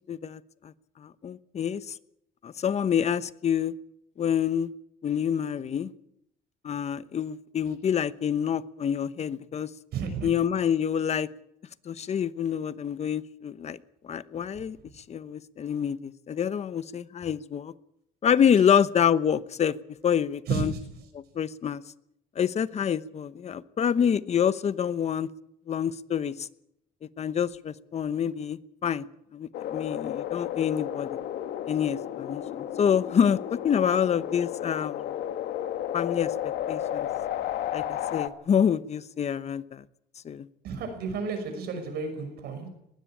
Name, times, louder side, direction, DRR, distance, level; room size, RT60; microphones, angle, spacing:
voice 1, 0.1-2.0 2.4-3.7 4.2-4.7 5.0-5.9 6.6-9.7 10.2-11.3 11.8-13.8 14.0-14.8 15.1-17.7 18.2-19.8 20.0-20.7 21.1-21.8 22.4-25.3 25.7-26.5 27.2-29.0 29.3-31.2 31.7-35.1 35.9-37.1 37.7-39.8 40.2-40.5, left 8 dB, 40° left, 1.0 m, -27 dB
voice 2, 9.9-10.3 20.5-20.8 40.6-42.7, right 5 dB, 70° right, 5.9 m, -32 dB
sound 1, 29.5-38.3, left 11 dB, 75° left, 1.7 m, -33 dB
21.0 x 16.0 x 8.8 m
cardioid pair, 110°, 17 cm